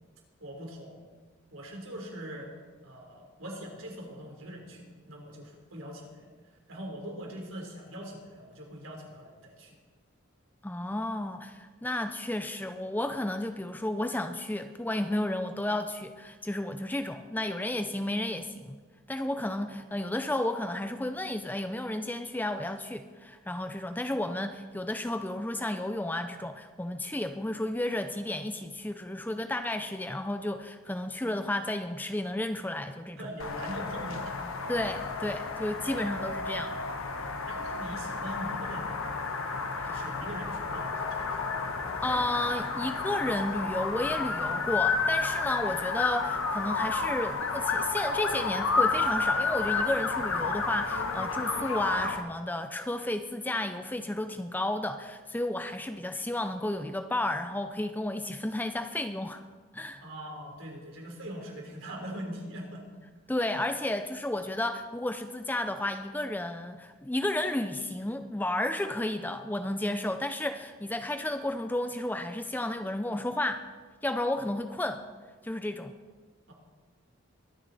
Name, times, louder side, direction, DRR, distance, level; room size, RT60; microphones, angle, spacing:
voice 1, 0.4-1.0 1.5-2.5 2.8-6.3 6.7-9.8 33.2-34.4 37.2-39.4 39.8-41.5 60.0-62.8 76.5-76.6, equal, 75° right, 0 dB, 3.5 m, -42 dB
voice 2, 10.6-18.8 19.1-33.3 34.7-36.8 39.8-40.0 42.0-59.4 59.7-60.0 63.3-73.6 74.0-75.0 75.4-75.9, left 1 dB, 10° left, 8 dB, 0.4 m, -32 dB
sound 1, 33.4-52.2, left 4 dB, 80° left, 1.2 m, -31 dB
22.5 x 9.8 x 4.1 m, 1.4 s
head